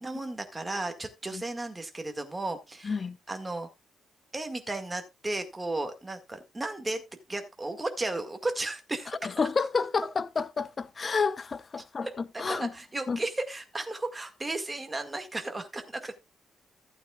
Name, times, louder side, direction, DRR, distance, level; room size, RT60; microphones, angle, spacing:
voice 1, 0.0-2.9 3.3-3.7 4.3-7.0 7.3-9.3 12.0-16.1, right 2 dB, 15° right, 1.9 m, -34 dB
voice 2, 2.8-3.2 9.2-12.7 13.1-13.2, left 5 dB, 30° left, 0.7 m, -30 dB
15.0 x 8.7 x 2.4 m
cardioid pair, 155°, 0 cm